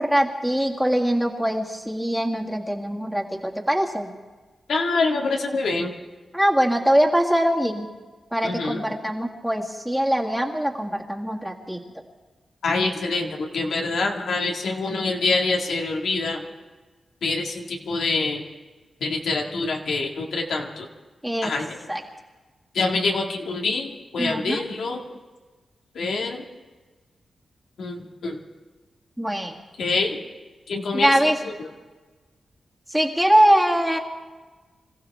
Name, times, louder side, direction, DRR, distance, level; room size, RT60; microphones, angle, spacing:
voice 1, 0.0-4.1 6.3-7.9 8.3-11.8 21.2-21.5 21.9-22.0 24.2-24.6 29.2-29.5 30.9-31.4 32.9-34.0, equal, 5° right, 0 dB, 2.0 m, -22 dB
voice 2, 4.7-5.9 8.4-8.9 12.6-16.5 17.2-18.4 19.0-20.9 21.4-21.8 22.7-25.0 25.9-26.5 27.8-28.4 29.8-30.2 30.7-31.7, left 3 dB, 80° left, 0 dB, 2.0 m, -26 dB
26.5 x 15.0 x 3.6 m, 1.3 s
cardioid pair, 85°, 0 cm